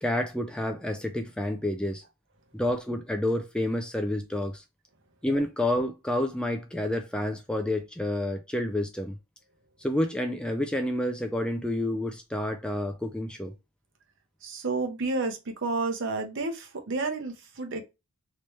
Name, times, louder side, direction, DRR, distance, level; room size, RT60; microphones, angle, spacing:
voice 1, 0.0-2.0 2.5-4.6 5.2-9.2 9.8-13.5, left 1 dB, 5° left, 0.3 m, -29 dB
voice 2, 14.4-17.8, right 3 dB, 60° right, 0.8 m, -30 dB
3.2 x 3.0 x 3.1 m
head